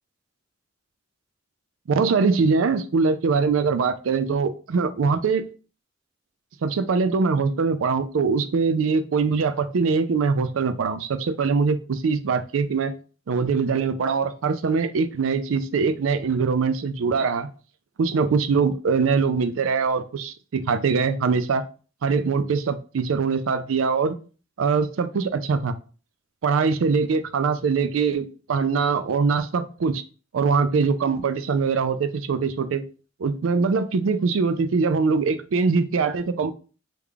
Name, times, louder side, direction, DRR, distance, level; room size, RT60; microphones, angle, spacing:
voice 1, 1.9-5.5 6.6-12.9 13.3-17.5 18.0-21.7 22.0-24.2 24.6-25.8 26.4-30.0 30.3-32.8 33.2-36.5, right 5 dB, 90° right, 12 dB, 0.4 m, -22 dB
3.5 x 2.3 x 3.3 m, 0.36 s
head